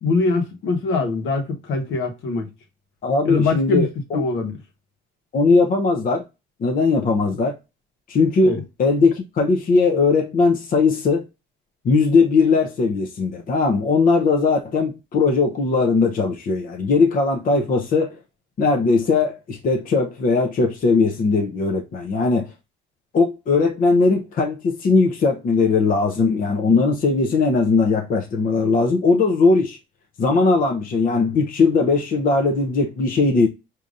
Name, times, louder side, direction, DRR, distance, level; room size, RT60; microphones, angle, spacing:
voice 1, 0.0-2.5 3.2-3.9 4.1-4.6 8.4-8.6, left 3 dB, 75° left, 1.3 m, -22 dB
voice 2, 3.0-4.3 5.3-6.2 6.6-7.5 8.1-11.2 11.8-18.2 18.6-22.5 23.1-29.8 30.2-33.5, left 4 dB, 45° left, 0.7 m, -19 dB
4.9 x 2.8 x 2.5 m
cardioid pair, 120°, 20 cm